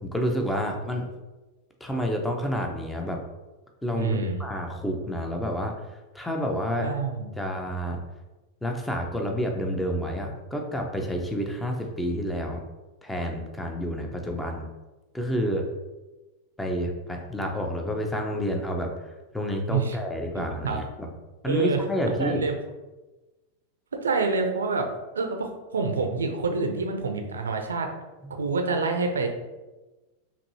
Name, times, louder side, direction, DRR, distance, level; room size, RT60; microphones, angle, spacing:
voice 1, 0.0-1.1 1.8-3.2 3.8-6.9 7.4-8.0 8.6-12.6 13.0-14.7 15.1-15.6 16.6-21.1 21.4-22.4 28.2-28.3, equal, 5° left, 2 dB, 0.6 m, -29 dB
voice 2, 4.0-4.4 6.8-7.4 19.7-20.0 20.3-20.8 21.5-21.8 22.1-22.5 23.9-24.9 25.1-27.9 28.4-29.3, right 4 dB, 70° right, 4 dB, 0.5 m, -27 dB
5.3 x 2.7 x 2.8 m, 1.1 s
figure-of-eight pair, 90°, 0 cm